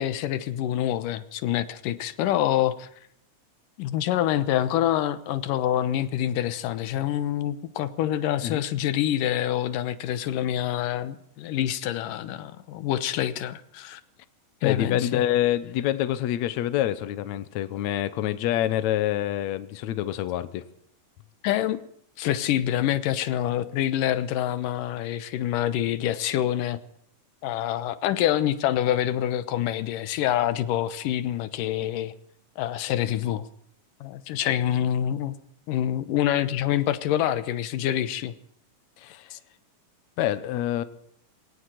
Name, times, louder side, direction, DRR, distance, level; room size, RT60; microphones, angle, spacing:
voice 1, 0.0-2.9 3.8-14.0 14.6-15.2 21.4-21.8 22.2-26.8 27.4-32.1 32.6-33.4 34.0-35.4 35.7-38.3 39.3-39.4, left 11 dB, 90° left, 2.6 m, -26 dB
voice 2, 14.6-20.7 39.0-39.3 40.2-40.8, left 12 dB, 70° left, 2.1 m, -26 dB
21.0 x 18.0 x 7.7 m
omnidirectional pair, 3.7 m